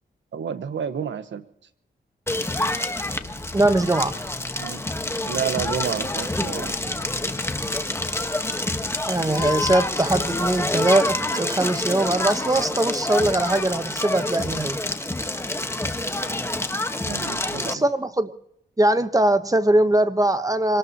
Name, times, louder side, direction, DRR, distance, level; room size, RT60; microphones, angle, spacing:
voice 1, 0.3-1.4 2.7-2.8 4.6-4.8 5.2-7.0 17.1-17.8, right 7 dB, 85° right, 1.2 m, -30 dB
Crackle, 2.3-17.7, left 2 dB, 15° left, 1.3 m, -27 dB
sound 1, 3.2-10.6, left 2 dB, 30° left, 2.9 m, -46 dB
voice 2, 3.5-4.2 9.1-14.8 17.7-18.3 18.8-20.8, right 1 dB, 20° right, 1.1 m, -21 dB
25.5 x 19.0 x 2.9 m
cardioid pair, 75°, 19 cm